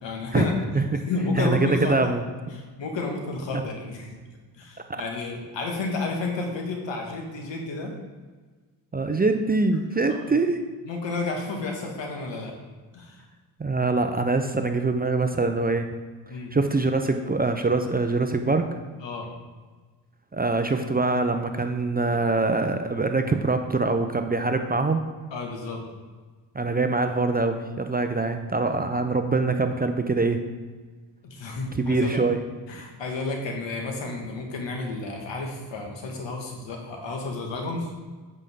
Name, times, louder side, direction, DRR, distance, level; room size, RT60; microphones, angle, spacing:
voice 1, 0.0-0.5 1.1-2.0 2.5-4.1 4.5-7.9 10.1-10.4 10.8-12.5 12.9-13.2 16.3-16.5 19.0-19.3 25.3-25.8 31.2-32.2 32.7-37.9, left 3 dB, 65° left, 1 dB, 1.8 m, -31 dB
voice 2, 1.4-2.2 4.9-5.0 8.9-10.6 13.6-15.9 16.5-18.7 20.3-25.0 26.5-30.4 31.7-32.4, right 3 dB, 20° right, 6 dB, 0.6 m, -24 dB
8.3 x 5.4 x 3.7 m, 1.4 s
supercardioid pair, 60°, 47 cm